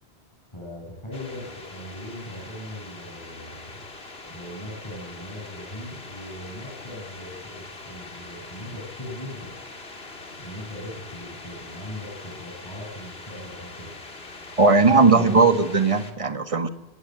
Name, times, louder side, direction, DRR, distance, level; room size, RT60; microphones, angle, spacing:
voice 1, 0.5-3.8 4.3-9.6 10.4-13.9 14.9-15.4, left 1 dB, 25° left, -3 dB, 8.0 m, -39 dB
sound 1, 1.1-16.1, left 3 dB, 65° left, 2.7 m, -42 dB
voice 2, 14.6-16.7, right 4 dB, 30° right, 8 dB, 1.6 m, -18 dB
26.5 x 18.0 x 7.9 m, 0.97 s
omnidirectional pair, 1.1 m